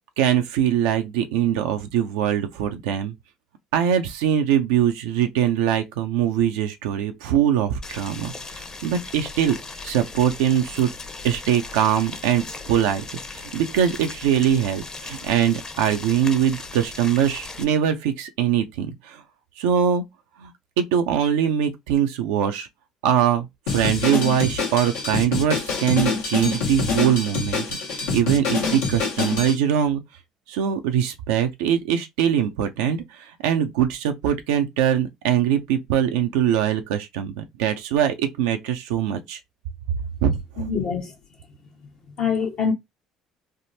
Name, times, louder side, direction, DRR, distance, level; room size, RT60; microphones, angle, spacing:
voice 1, 0.2-3.1 3.7-8.3 8.8-9.6 9.8-10.9 11.2-13.0 13.3-19.2 19.6-20.0 20.4-20.5 20.8-22.7 23.0-27.8 28.1-30.0 30.5-33.0 33.4-39.4 40.2-40.7, right 9 dB, 80° right, 0.5 m, -22 dB
Boiling, 7.8-17.6, left 3 dB, 30° left, 0.8 m, -38 dB
Drum kit, 23.7-29.5, left 5 dB, 80° left, 1.0 m, -25 dB
voice 2, 40.6-41.1 42.2-42.7, left 6 dB, 55° left, 0.9 m, -24 dB
3.4 x 2.0 x 2.6 m
hypercardioid pair, 65°, 2 cm